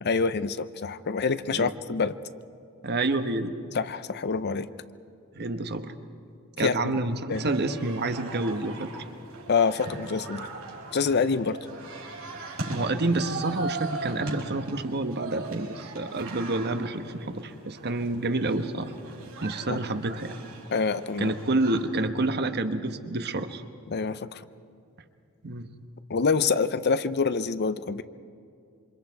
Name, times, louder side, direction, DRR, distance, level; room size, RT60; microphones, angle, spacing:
voice 1, 0.0-2.2 3.7-4.7 6.6-7.0 7.3-7.4 9.5-10.5 10.9-11.6 19.7-19.8 20.7-21.4 23.9-24.4 26.1-28.0, left 5 dB, 50° left, 14 dB, 0.6 m, -26 dB
voice 2, 2.8-3.5 5.3-5.9 6.6-9.0 12.7-18.9 19.4-20.3 21.2-23.6 25.4-25.7, right 2 dB, 50° right, 8 dB, 1.1 m, -28 dB
sound 1, 7.3-21.8, right 2 dB, 65° right, 4.6 m, -39 dB
27.5 x 25.0 x 4.7 m, 2.5 s
head